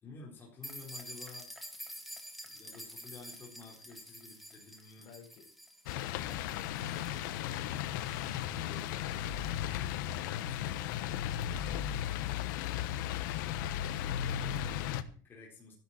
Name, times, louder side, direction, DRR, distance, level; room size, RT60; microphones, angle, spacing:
voice 1, 0.0-1.5 2.4-5.1 14.0-15.7, left 4 dB, 20° left, -3 dB, 4.4 m, -53 dB
sound 1, 0.6-8.4, equal, ahead, 2.0 m, -49 dB
voice 2, 5.0-5.5 5.9-7.9 8.2-9.7, left 6 dB, 45° left, 2 dB, 5.3 m, -55 dB
sound 2, 5.9-15.0, left 11 dB, 85° left, 1.2 m, -35 dB
13.5 x 11.5 x 4.3 m, 0.40 s
cardioid pair, 165°, 10 cm